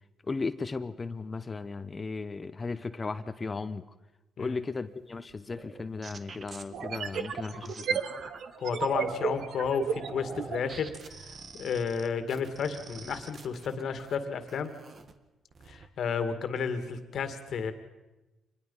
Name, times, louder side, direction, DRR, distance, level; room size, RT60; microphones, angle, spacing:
voice 1, 0.3-3.9 4.4-8.0, left 4 dB, 30° left, 13 dB, 0.9 m, -36 dB
sound 1, 5.3-5.4 6.7-10.7, right 7 dB, 70° right, 1.2 m, -33 dB
sound 2, 5.5-8.4 8.9-9.5 9.9-14.2 14.5-15.1 15.5-15.9, right 4 dB, 45° right, 1.7 m, -45 dB
voice 2, 8.6-10.9 11.6-14.7 15.7-17.7, left 6 dB, 65° left, 10 dB, 2.1 m, -32 dB
25.5 x 20.5 x 5.6 m, 1.1 s
cardioid pair, 90°, 0 cm